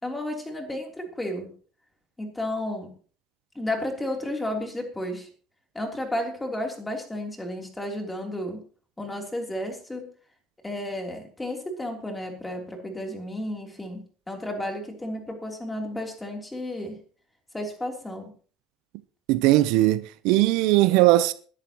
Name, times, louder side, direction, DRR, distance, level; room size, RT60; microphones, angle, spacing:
voice 1, 0.0-1.5 2.2-2.9 3.5-5.3 5.7-8.6 9.0-10.0 10.6-17.0 17.5-18.3, left 1 dB, 10° left, 3.3 m, -32 dB
voice 2, 19.3-21.3, right 17 dB, 75° right, 0.6 m, -19 dB
21.5 x 11.0 x 3.0 m
cardioid pair, 140°, 0 cm